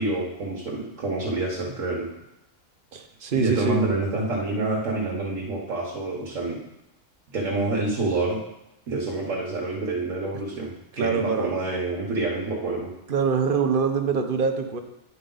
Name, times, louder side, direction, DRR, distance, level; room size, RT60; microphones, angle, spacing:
voice 1, 0.0-2.1 3.3-6.6 7.3-8.4 8.9-12.9, right 2 dB, 70° right, -3 dB, 1.6 m, -27 dB
voice 2, 2.9-3.9 10.9-11.6 13.1-14.8, right 5 dB, 50° right, 6 dB, 0.7 m, -24 dB
9.9 x 5.5 x 3.9 m, 0.89 s
omnidirectional pair, 1.4 m